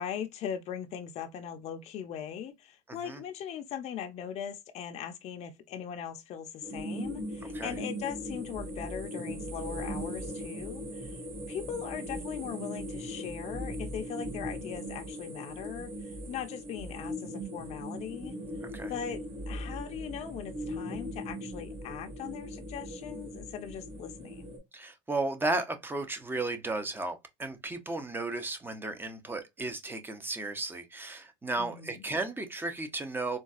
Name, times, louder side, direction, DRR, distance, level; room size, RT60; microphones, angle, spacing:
voice 1, 0.0-11.2 11.5-18.4 18.9-19.2 19.5-24.5 31.6-32.0, left 8 dB, 45° left, 0.5 m, -40 dB
voice 2, 2.9-3.2 7.5-7.7 18.7-18.9 24.7-33.4, right 2 dB, 15° right, 0.7 m, -34 dB
sound 1, 6.6-24.6, equal, 45° right, 2.3 m, -39 dB
3.8 x 2.3 x 2.4 m
supercardioid pair, 100°, 16 cm